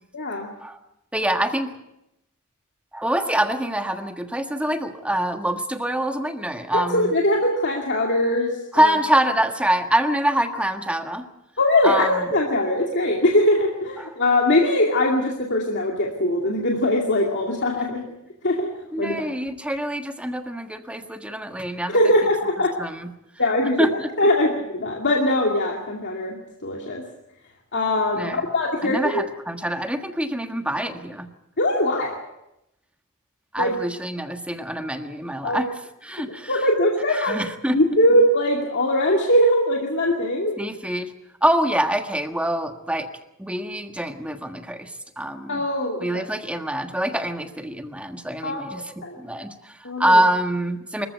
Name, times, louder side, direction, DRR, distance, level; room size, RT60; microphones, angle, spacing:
voice 1, 0.1-0.5 6.7-8.9 11.6-18.0 18.4-18.7 19.0-19.2 21.9-22.7 23.4-23.9 24.2-26.4 26.6-27.0 27.7-29.2 31.6-32.2 33.6-33.7 35.4-35.7 36.3-37.4 37.7-40.5 45.5-46.3 48.4-49.2 49.8-50.0, left 1 dB, 55° left, 0 dB, 2.5 m, -21 dB
voice 2, 1.1-1.7 2.9-7.1 8.7-11.3 11.8-12.3 14.0-14.1 18.9-22.0 22.8-23.1 23.8-24.1 28.2-28.4 28.8-31.3 33.5-36.5 37.1-37.8 40.6-41.1 41.4-43.1 43.4-45.6 46.0-51.1, right 1 dB, 5° right, 6 dB, 1.5 m, -25 dB
25.0 x 15.0 x 8.1 m, 0.86 s
head